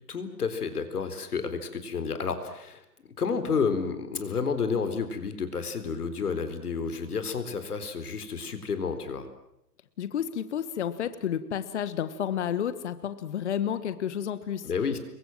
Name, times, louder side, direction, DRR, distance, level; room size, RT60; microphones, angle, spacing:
voice 1, 0.1-2.8 3.2-9.3 14.6-15.0, left 5 dB, 65° left, 9 dB, 4.1 m, -30 dB
voice 2, 10.0-14.7, left 9 dB, 45° left, 13 dB, 1.4 m, -31 dB
27.5 x 23.0 x 7.5 m, 0.81 s
hypercardioid pair, 150°, 49 cm